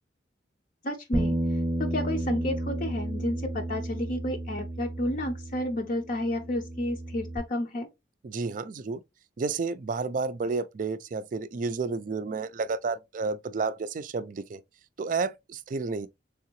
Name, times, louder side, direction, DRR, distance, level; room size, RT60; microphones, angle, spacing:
voice 1, 0.8-1.3 1.8-7.9, left 1 dB, 50° left, 0.6 m, -31 dB
Bass guitar, 1.1-7.4, right 1 dB, ahead, 0.7 m, -32 dB
voice 2, 8.2-9.0 9.4-14.6 15.0-16.1, right 4 dB, 45° right, 0.4 m, -31 dB
3.7 x 3.4 x 2.9 m
head